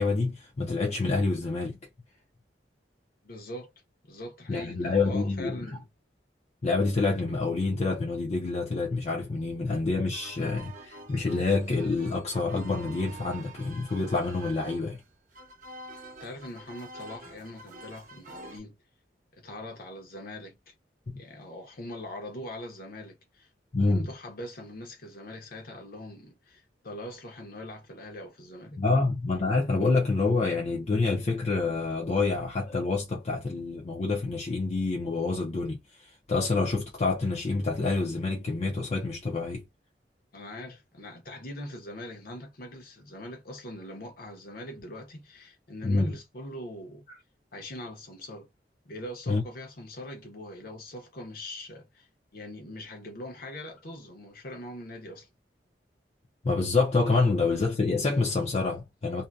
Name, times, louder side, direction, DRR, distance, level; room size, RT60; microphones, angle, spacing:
voice 1, 0.0-1.8 4.5-5.8 6.6-15.0 23.7-24.1 28.8-39.6 45.8-46.1 49.3-49.4 56.4-59.3, left 3 dB, 40° left, 0.5 m, -27 dB
voice 2, 3.2-3.7 4.0-5.9 16.2-18.7 19.3-20.7 21.2-23.5 23.8-28.8 40.3-47.1 47.5-48.5 48.8-55.3, left 1 dB, 55° left, 0.9 m, -42 dB
sound 1, 10.1-18.6, right 2 dB, 50° right, 0.8 m, -47 dB
2.6 x 2.1 x 2.3 m
head